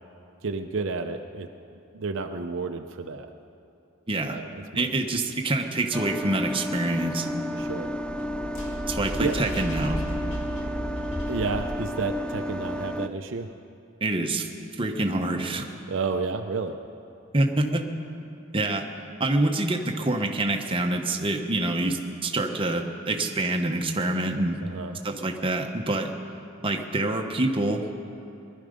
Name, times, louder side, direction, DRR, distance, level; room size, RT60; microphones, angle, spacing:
voice 1, 0.4-1.5 1.9-3.3 4.3-4.9 7.6-7.9 9.2-9.4 11.3-13.5 15.9-16.8 24.6-25.0, right 4 dB, 60° right, 5 dB, 0.6 m, -31 dB
voice 2, 4.1-4.4 4.7-7.3 8.9-10.0 14.0-14.5 14.8-15.7 17.3-17.9 18.5-18.9 19.2-24.6 25.0-26.1 26.6-28.0, right 2 dB, 25° right, 3 dB, 0.9 m, -26 dB
sound 1, 5.9-13.1, equal, 5° left, 0.3 m, -31 dB
sound 2, 8.0-12.8, right 2 dB, 65° left, 1.9 m, -38 dB
20.5 x 11.5 x 5.1 m, 2.7 s
head